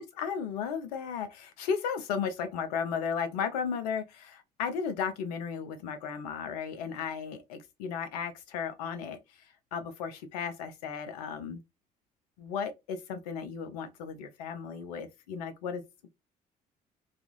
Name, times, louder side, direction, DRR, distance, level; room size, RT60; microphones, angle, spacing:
voice 1, 0.0-9.4 9.7-11.6 12.4-16.1, left 6 dB, 80° left, 0.6 m, -35 dB
2.4 x 2.4 x 2.9 m
hypercardioid pair, 50°, 20 cm